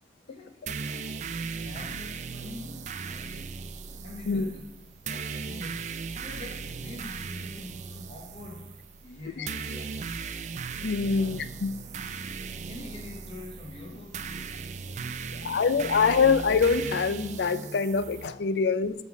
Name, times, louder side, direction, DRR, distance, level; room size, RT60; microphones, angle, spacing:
voice 1, 0.3-3.6 4.0-10.4 11.0-12.2 12.6-14.5 15.0-16.1, left 2 dB, 35° left, -2 dB, 0.8 m, -46 dB
sound 1, 0.7-18.3, right 5 dB, 40° right, 0.4 m, -37 dB
voice 2, 10.8-11.7 15.4-19.0, left 5 dB, 75° left, 13 dB, 0.4 m, -24 dB
8.3 x 3.6 x 4.7 m, 0.87 s
head